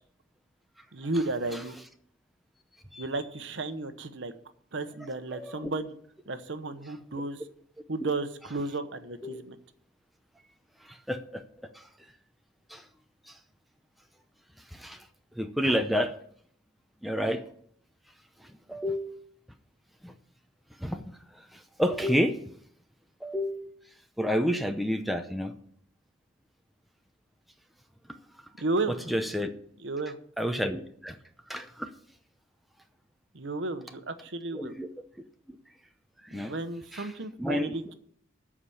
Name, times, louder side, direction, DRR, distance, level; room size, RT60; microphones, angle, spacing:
voice 1, 0.9-1.7 3.0-4.3 4.7-5.9 6.3-7.4 7.9-9.6 28.6-29.2 29.8-30.2 33.3-34.7 36.3-37.8, right 2 dB, 65° right, 9 dB, 1.0 m, -33 dB
voice 2, 5.3-5.7 9.2-9.4 10.8-11.4 11.7-11.9 12.7-12.8 13.3-13.4 14.7-15.1 15.3-16.2 17.0-17.4 18.4-19.2 20.0-20.1 20.8-21.0 21.3-22.4 23.2-23.7 24.2-25.5 28.9-29.5 30.4-31.2 31.5-31.9 34.5-34.9 35.5-35.6 36.2-36.5 36.9-37.1 37.4-37.7, equal, ahead, 5 dB, 0.7 m, -30 dB
13.5 x 4.9 x 8.5 m, 0.64 s
head